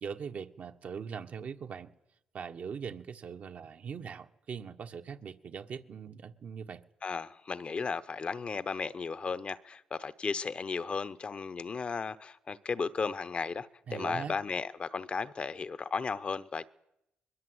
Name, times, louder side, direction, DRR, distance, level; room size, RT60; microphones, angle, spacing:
voice 1, 0.0-1.9 2.3-6.8 13.9-14.4, right 6 dB, 55° right, 1.5 m, -41 dB
voice 2, 7.0-16.7, left 5 dB, 40° left, 1.0 m, -35 dB
22.0 x 21.5 x 8.1 m
cardioid pair, 90°, 3 cm